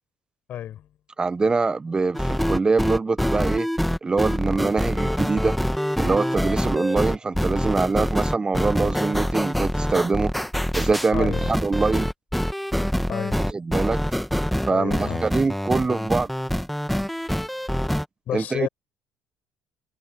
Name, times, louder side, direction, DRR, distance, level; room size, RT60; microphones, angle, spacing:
voice 1, 0.5-0.9 11.1-11.5 13.1-13.4 14.7-15.3 18.3-18.7, left 11 dB, 55° left, 7.9 m, -30 dB
voice 2, 1.2-3.7 4.0-5.5 6.0-10.3 10.7-12.1 13.5-14.0 14.7-16.3 18.3-18.7, right 4 dB, 25° right, 1.2 m, -24 dB
sound 1, 2.1-18.0, equal, ahead, 1.9 m, -25 dB
hypercardioid pair, 55°, 3 cm